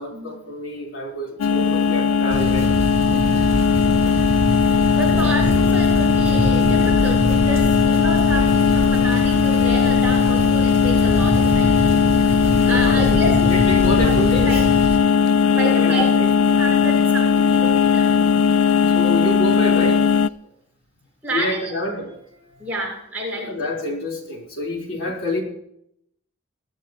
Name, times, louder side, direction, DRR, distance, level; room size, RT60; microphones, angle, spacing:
voice 1, 0.0-2.7 5.1-5.3 12.6-14.6 15.6-16.3 18.9-20.1 21.3-22.2 23.3-25.4, left 1 dB, 65° left, -2 dB, 4.4 m, -27 dB
sound 1, 1.4-20.3, left 6 dB, 85° left, 0.5 m, -18 dB
sound 2, 2.3-15.0, equal, 30° right, 7.4 m, -25 dB
voice 2, 3.1-3.5 4.9-11.8 12.3-13.4 14.0-14.6 15.4-16.1 16.5-18.1 21.2-21.7 22.6-23.5, right 1 dB, 5° right, -5 dB, 7.2 m, -29 dB
21.5 x 13.0 x 3.1 m, 0.74 s
head